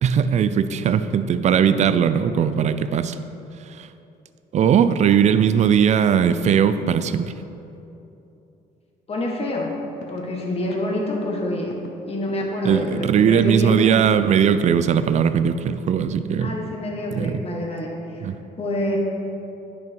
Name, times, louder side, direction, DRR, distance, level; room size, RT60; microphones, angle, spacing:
voice 1, 0.0-3.2 3.8-3.9 4.5-7.3 12.6-16.5 17.1-17.4 18.2-18.4, right 8 dB, 45° right, 12 dB, 0.4 m, -19 dB
voice 2, 9.1-9.7 10.1-11.7 12.1-14.0 16.4-18.3 18.6-19.0, left 1 dB, 35° left, -1 dB, 1.6 m, -27 dB
sound 1, 9.5-9.6 10.0-10.3 10.7-10.8 11.7-11.9 12.3-13.0 13.4-14.5, left 8 dB, 85° left, 0.8 m, -43 dB
10.0 x 5.8 x 4.6 m, 2.8 s
cardioid pair, 110°, 17 cm